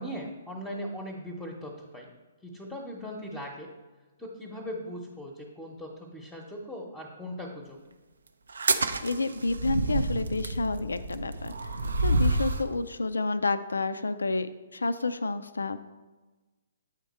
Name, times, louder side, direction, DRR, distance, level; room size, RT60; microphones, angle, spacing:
voice 1, 0.0-2.1 2.4-3.7 4.2-7.8, equal, 5° left, 0 dB, 0.9 m, -39 dB
sound 1, 8.5-12.7, right 2 dB, 80° right, 0.5 m, -28 dB
voice 2, 9.0-11.7 12.0-15.8, left 3 dB, 85° left, 12 dB, 0.4 m, -30 dB
8.9 x 3.6 x 4.2 m, 1.2 s
hypercardioid pair, 130°, 0 cm